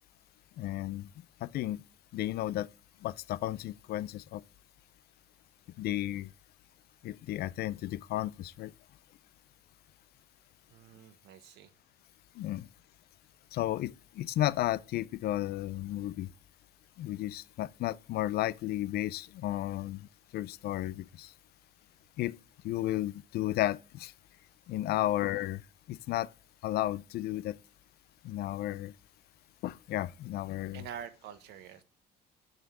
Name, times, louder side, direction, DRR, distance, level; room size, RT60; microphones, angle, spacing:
voice 1, 0.6-1.1 1.4-1.8 2.1-2.7 3.0-4.4 5.8-6.3 7.0-8.7 12.4-12.7 13.5-16.3 17.0-20.1 20.3-21.3 22.2-22.4 22.6-24.1 24.7-25.6 25.9-26.3 26.6-27.6 28.2-28.9 29.6-30.8, left 14 dB, 70° left, 0.5 m, -33 dB
voice 2, 10.7-11.7 24.9-25.1 30.7-31.8, right 9 dB, 85° right, 1.2 m, -46 dB
8.8 x 6.4 x 4.7 m
cardioid pair, 110°, 17 cm